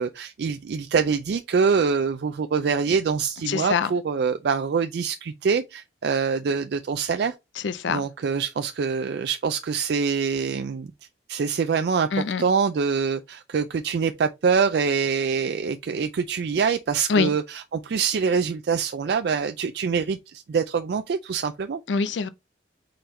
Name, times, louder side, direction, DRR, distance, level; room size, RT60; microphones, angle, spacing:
voice 1, 0.0-7.3 7.9-10.9 11.3-12.1 12.4-21.8, right 5 dB, 65° right, 0.4 m, -25 dB
voice 2, 3.5-3.9 7.6-8.0 12.1-12.4 17.1-17.3 21.9-22.3, left 5 dB, 90° left, 0.5 m, -24 dB
4.3 x 3.8 x 3.1 m
head